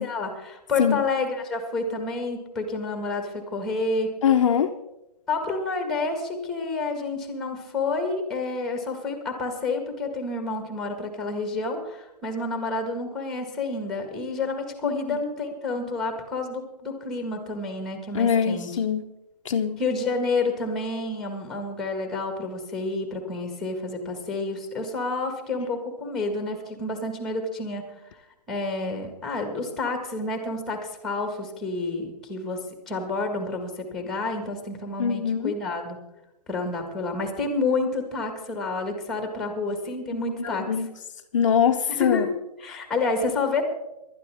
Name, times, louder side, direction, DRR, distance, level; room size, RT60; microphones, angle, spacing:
voice 1, 0.0-4.1 5.3-18.8 19.8-27.9 28.5-36.0 36.5-40.7 41.9-42.3 42.6-43.6, left 3 dB, ahead, 5 dB, 1.7 m, -29 dB
voice 2, 4.2-4.7 18.1-19.0 19.5-19.8 35.0-35.5 40.7-40.9 41.3-42.3, left 8 dB, 50° left, 5 dB, 0.8 m, -22 dB
19.0 x 12.0 x 3.5 m, 0.93 s
hypercardioid pair, 160°, 21 cm